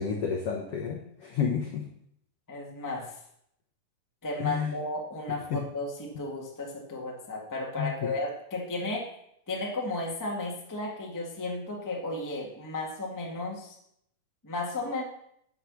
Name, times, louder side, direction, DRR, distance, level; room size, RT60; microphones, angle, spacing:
voice 1, 0.0-1.8 4.4-4.7 5.3-5.6 7.8-8.1, left 6 dB, 75° left, 0 dB, 1.3 m, -31 dB
voice 2, 2.5-3.2 4.2-9.1 9.5-13.8 14.4-15.0, left 2 dB, 10° left, -1 dB, 0.8 m, -34 dB
8.5 x 8.4 x 6.4 m, 0.73 s
omnidirectional pair, 4.5 m